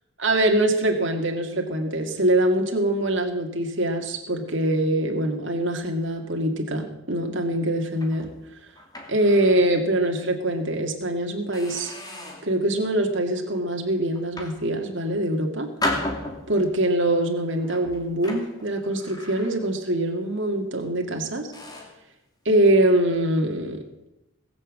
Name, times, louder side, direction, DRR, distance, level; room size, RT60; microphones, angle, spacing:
voice 1, 0.2-8.3 9.1-11.9 12.4-15.7 16.5-21.5 22.5-23.8, right 1 dB, 60° right, 2 dB, 2.2 m, -23 dB
sound 1, 7.9-9.7 10.2-10.3 10.9-11.1 11.5-12.6 13.1-13.5 14.1-15.2 15.8-16.8 17.6-19.9 20.2-20.5 21.1-21.2 21.5-22.0, left 1 dB, 20° left, 2.5 m, -35 dB
20.0 x 7.3 x 7.5 m, 0.90 s
head